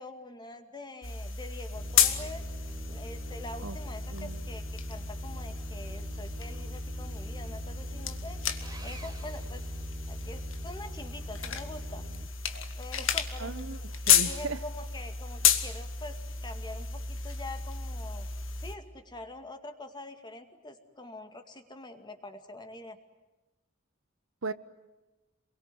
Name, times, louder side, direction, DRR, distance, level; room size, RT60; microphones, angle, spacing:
voice 1, 0.0-2.5 2.9-8.4 8.8-9.7 10.1-12.0 12.8-13.8 14.2-18.3 18.6-23.0, left 2 dB, 20° left, 2.3 m, -45 dB
sound 1, 1.0-18.8, left 7 dB, 75° left, 2.0 m, -32 dB
sound 2, 1.7-12.3, right 1 dB, 40° right, 1.2 m, -45 dB
Sawing, 8.6-10.5, right 2 dB, 20° right, 3.9 m, -50 dB
voice 2, 13.4-14.6 24.4-24.5, right 3 dB, 70° right, 1.1 m, -37 dB
28.5 x 22.5 x 9.4 m
head